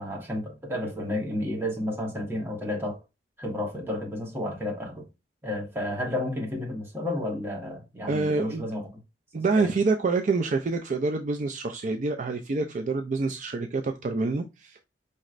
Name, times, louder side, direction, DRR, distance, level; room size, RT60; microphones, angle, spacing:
voice 1, 0.0-3.0 3.4-5.1 5.4-8.9 9.6-9.7, left 1 dB, 15° right, 1.2 m, -31 dB
voice 2, 8.1-8.7 9.3-14.9, right 3 dB, 45° right, 0.4 m, -27 dB
5.3 x 3.1 x 2.5 m
head